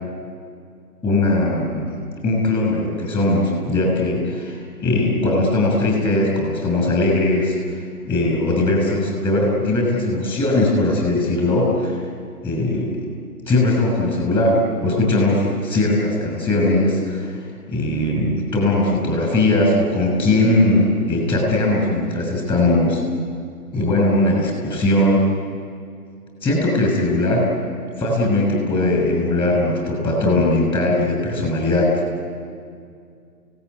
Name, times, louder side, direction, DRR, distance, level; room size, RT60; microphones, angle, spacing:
voice 1, 1.0-12.0 12.4-13.1 13.5-17.3 17.7-23.0 23.7-25.3 26.4-27.5 28.0-32.0, left 2 dB, 10° left, 0 dB, 6.5 m, -19 dB
29.5 x 18.0 x 9.5 m, 2.3 s
hypercardioid pair, 155°, 48 cm